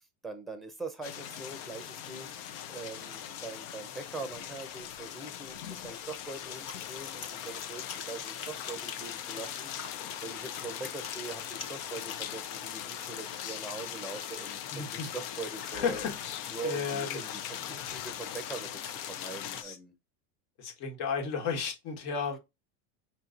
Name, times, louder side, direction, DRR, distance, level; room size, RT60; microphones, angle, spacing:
voice 1, 0.2-2.3 2.7-6.0 6.3-8.3 8.7-9.7 10.2-16.1 16.5-18.9 19.2-19.9, right 3 dB, ahead, 0.5 m, -42 dB
sound 1, 1.0-19.6, left 10 dB, 80° left, 0.8 m, -40 dB
sound 2, 6.4-12.2, left 4 dB, 30° left, 0.9 m, -46 dB
voice 2, 14.7-15.1 15.7-16.3 16.6-17.2 19.5-19.8 20.6-22.4, left 6 dB, 65° left, 1.5 m, -33 dB
5.5 x 2.8 x 2.5 m
supercardioid pair, 120°, 46 cm